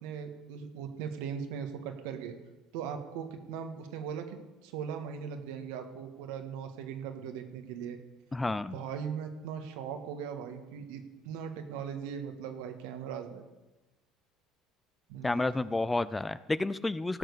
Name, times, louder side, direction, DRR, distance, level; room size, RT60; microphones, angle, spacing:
voice 1, 0.0-2.4 2.7-8.0 8.7-13.4 15.1-15.5, right 7 dB, 80° right, 6 dB, 1.7 m, -39 dB
voice 2, 8.3-8.8 15.2-17.2, left 2 dB, 15° left, 16 dB, 0.5 m, -30 dB
16.5 x 6.4 x 6.9 m, 1.1 s
supercardioid pair, 100°, 0 cm